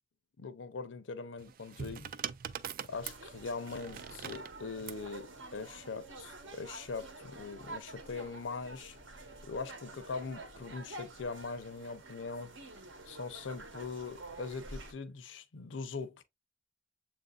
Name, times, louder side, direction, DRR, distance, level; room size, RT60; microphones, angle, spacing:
voice 1, 0.4-2.1 2.9-9.0 9.4-12.5 13.0-16.2, left 4 dB, 70° left, 0.6 m, -41 dB
sound 1, 1.4-5.1 6.1-6.5, right 8 dB, 45° right, 0.3 m, -43 dB
sound 2, 2.9-14.9, right 2 dB, 70° right, 1.0 m, -49 dB
7.3 x 2.6 x 2.3 m
head